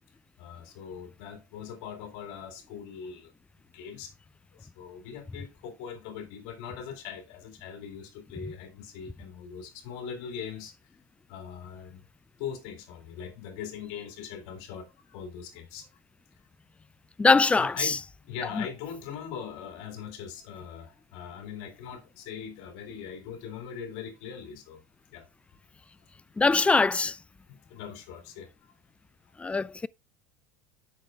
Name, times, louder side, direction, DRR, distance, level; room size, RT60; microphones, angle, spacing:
voice 1, 0.4-3.3 3.7-4.1 4.8-10.7 11.3-12.0 12.4-15.8 17.6-24.8 25.1-25.2 27.5-28.5, left 7 dB, 65° left, 2.4 m, -41 dB
voice 2, 17.2-18.0 18.6-18.7 26.4-27.2 29.4-29.9, left 4 dB, 10° left, 0.3 m, -22 dB
8.1 x 6.1 x 3.5 m
supercardioid pair, 105°, 11 cm